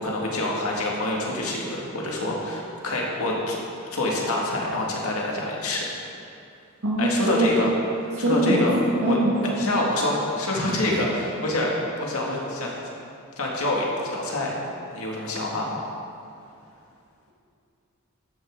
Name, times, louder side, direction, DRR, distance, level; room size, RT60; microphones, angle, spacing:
voice 1, 0.0-3.6 3.9-5.8 7.0-7.7 8.0-8.8 9.0-9.2 9.5-12.7 13.4-14.5 14.9-15.9, left 1 dB, 85° left, -3 dB, 2.0 m, -26 dB
voice 2, 6.8-7.5 8.2-8.6 9.0-9.6 10.7-10.8, right 2 dB, 80° right, -6 dB, 1.8 m, -23 dB
13.5 x 9.4 x 3.8 m, 2.5 s
head